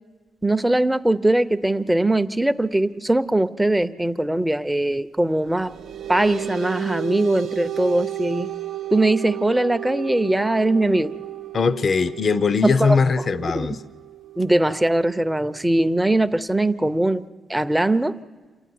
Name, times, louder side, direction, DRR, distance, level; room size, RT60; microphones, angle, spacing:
voice 1, 0.4-5.7 6.1-8.5 8.9-11.1 12.6-13.0 13.4-13.7 14.4-18.2, right 1 dB, 10° right, 10 dB, 0.6 m, -21 dB
sound 1, 5.4-16.4, right 14 dB, 70° right, 0.6 m, -34 dB
voice 2, 11.5-13.8, left 5 dB, 45° left, 13 dB, 0.6 m, -20 dB
27.5 x 11.5 x 9.4 m, 1.4 s
cardioid pair, 90°, 0 cm